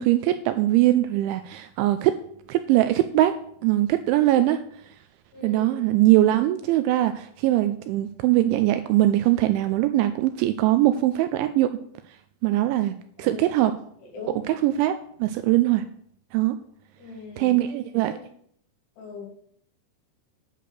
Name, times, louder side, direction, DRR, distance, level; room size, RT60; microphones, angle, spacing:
voice 1, 0.0-2.2 2.5-3.3 3.6-4.6 5.4-11.7 12.4-13.7 14.5-15.8 16.3-16.6 17.4-18.1, right 14 dB, 85° right, 10 dB, 2.7 m, -21 dB
voice 2, 5.3-5.8 13.2-13.7 14.0-14.4 17.0-17.6 18.1-18.2 19.0-19.3, left 3 dB, 70° left, 0 dB, 5.5 m, -40 dB
10.0 x 6.5 x 7.6 m, 0.65 s
omnidirectional pair, 5.8 m